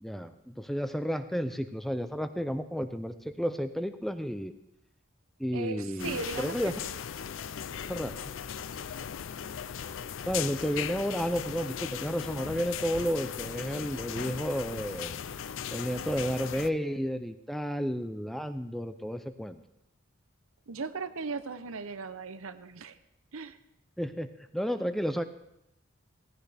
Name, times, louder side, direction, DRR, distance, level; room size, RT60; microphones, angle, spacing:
voice 1, 0.0-4.5 5.4-6.8 7.9-8.1 10.3-15.2 15.7-19.6 24.0-25.2, equal, ahead, 9 dB, 0.5 m, -32 dB
voice 2, 5.5-6.6 20.7-23.0 23.3-23.6, right 4 dB, 80° right, 12 dB, 0.8 m, -37 dB
sound 1, 6.0-16.7, left 8 dB, 65° left, 0.4 m, -38 dB
16.5 x 14.5 x 3.4 m, 0.81 s
head